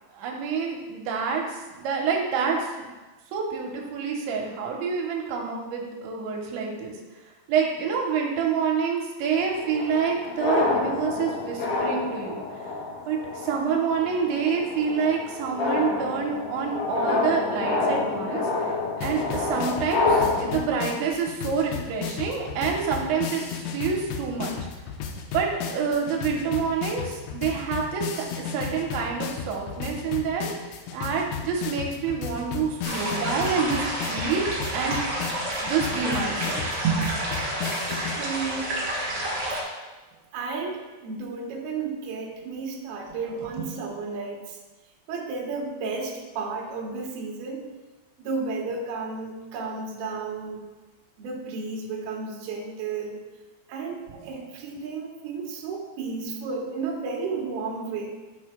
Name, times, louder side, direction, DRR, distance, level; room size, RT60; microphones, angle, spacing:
voice 1, 0.1-1.4 1.8-2.9 3.3-6.9 7.5-12.4 13.1-18.7 19.0-24.5 25.3-30.5 30.9-34.4 34.7-35.0 35.6-37.0 43.6-43.7 54.1-54.2, right 6 dB, 85° right, 0 dB, 3.2 m, -27 dB
sound 1, 9.3-20.6, left 3 dB, 60° left, 3.0 m, -28 dB
sound 2, 19.0-38.2, left 7 dB, 80° left, 2.7 m, -34 dB
sound 3, 32.8-39.6, right 1 dB, 30° right, 2.5 m, -30 dB
voice 2, 38.2-38.8 40.3-44.6 45.1-47.7 48.2-50.6 51.2-53.2 53.7-58.1, right 4 dB, 70° right, -1 dB, 2.8 m, -33 dB
15.5 x 6.4 x 2.2 m, 1.2 s
omnidirectional pair, 5.2 m